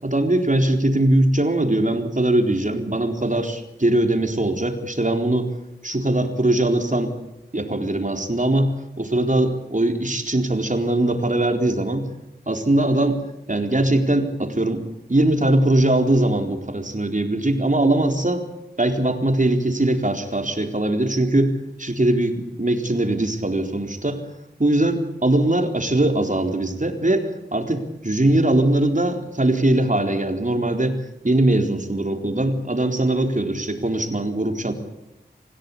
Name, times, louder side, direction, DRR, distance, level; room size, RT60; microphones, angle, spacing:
voice 1, 0.0-5.5 5.8-7.1 7.5-12.1 12.5-13.2 13.5-14.8 15.1-18.4 18.8-24.2 24.6-31.0 31.2-34.7, right 1 dB, 45° right, 5 dB, 4.1 m, -21 dB
27.0 x 17.0 x 8.7 m, 0.95 s
wide cardioid pair, 40°, 18 cm